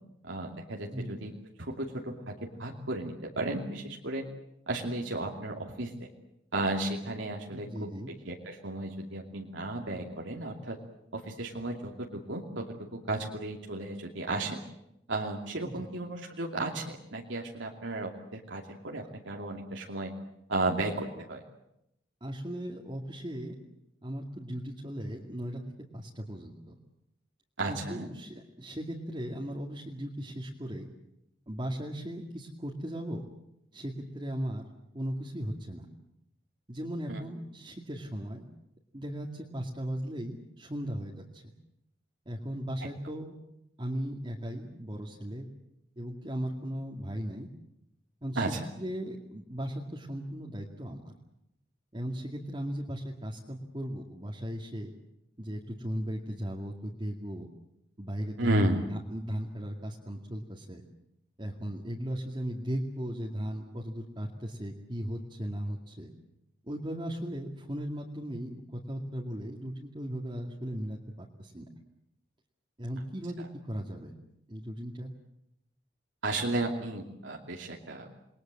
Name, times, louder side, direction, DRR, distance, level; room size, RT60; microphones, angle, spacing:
voice 1, 0.2-1.3 1.6-4.3 4.7-6.1 6.5-7.9 8.2-10.8 11.1-14.6 15.1-20.1 20.5-21.4 27.6-28.1 37.1-37.2 48.3-48.6 58.4-58.8 76.2-78.1, right 2 dB, 80° right, 0 dB, 2.7 m, -33 dB
voice 2, 7.5-8.1 15.6-15.9 22.2-23.6 24.0-25.6 25.9-26.8 27.7-30.9 31.5-33.2 33.7-34.7 34.9-35.9 36.7-38.4 38.9-41.4 42.3-43.3 43.8-45.5 46.0-47.5 48.2-48.4 48.8-51.1 51.9-54.9 55.4-57.5 58.0-58.6 59.1-60.8 61.4-66.1 66.7-71.7 72.8-74.1 74.5-75.1, equal, 25° right, -2 dB, 2.3 m, -37 dB
28.5 x 21.0 x 7.7 m, 0.81 s
head